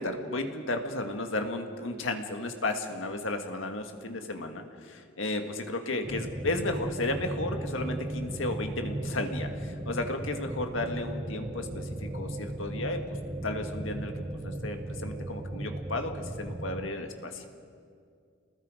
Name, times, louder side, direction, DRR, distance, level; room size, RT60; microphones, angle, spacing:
voice 1, 0.0-11.9 12.1-13.0 13.4-14.1 14.4-17.5, left 2 dB, 75° left, 5 dB, 1.8 m, -33 dB
sound 1, 6.0-16.9, right 1 dB, 20° right, 0.9 m, -36 dB
28.5 x 20.5 x 5.1 m, 2.2 s
head